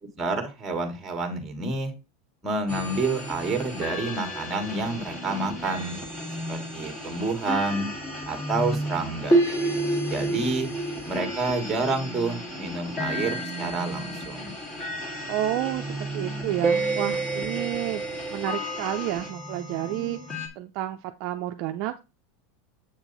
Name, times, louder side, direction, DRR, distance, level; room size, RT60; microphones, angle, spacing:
voice 1, 0.2-1.9 2.4-6.0 6.5-7.9 8.3-9.4 10.1-10.7 11.1-14.5, right 3 dB, 10° right, 6 dB, 1.5 m, -29 dB
sound 1, 2.7-20.5, right 1 dB, 20° left, 1.7 m, -30 dB
voice 2, 15.3-20.2 20.6-22.0, right 14 dB, 40° right, 5 dB, 0.5 m, -30 dB
7.7 x 4.5 x 4.0 m, 0.27 s
supercardioid pair, 175°, 0 cm